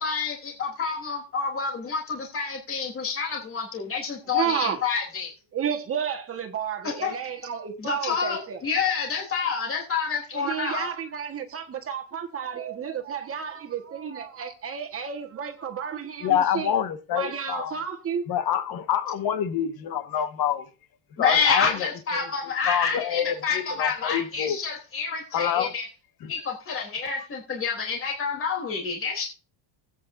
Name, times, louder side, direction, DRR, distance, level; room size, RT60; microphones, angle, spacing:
voice 1, 0.0-5.3 6.8-7.1 7.8-10.9 21.2-25.9 26.3-29.3, left 5 dB, 25° left, 3.4 m, -28 dB
voice 2, 4.3-4.8 5.5-8.6 10.3-16.7 17.1-18.2, right 8 dB, 25° right, 1.5 m, -31 dB
voice 3, 16.2-17.7 18.3-20.6 21.2-21.9 22.1-22.3 22.7-24.6 25.3-25.7 26.2-26.3, left 9 dB, 45° left, 1.6 m, -26 dB
20.5 x 8.9 x 2.7 m
cardioid pair, 165°, 50 cm